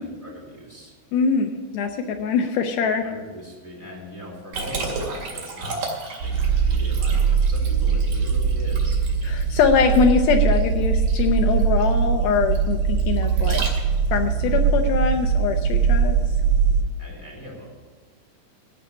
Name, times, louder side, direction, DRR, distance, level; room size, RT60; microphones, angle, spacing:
voice 1, 0.0-0.9 3.0-5.9 6.2-9.0 17.0-17.9, equal, 5° left, -4 dB, 3.3 m, -40 dB
voice 2, 1.1-3.1 9.2-13.7 14.1-16.2, left 5 dB, 75° left, 5 dB, 2.4 m, -22 dB
Liquid, 4.5-14.2, right 3 dB, 45° right, 3.3 m, -34 dB
sound 1, 6.2-16.8, right 6 dB, 70° right, 2.8 m, -21 dB
15.0 x 5.8 x 9.7 m, 1.5 s
omnidirectional pair, 5.0 m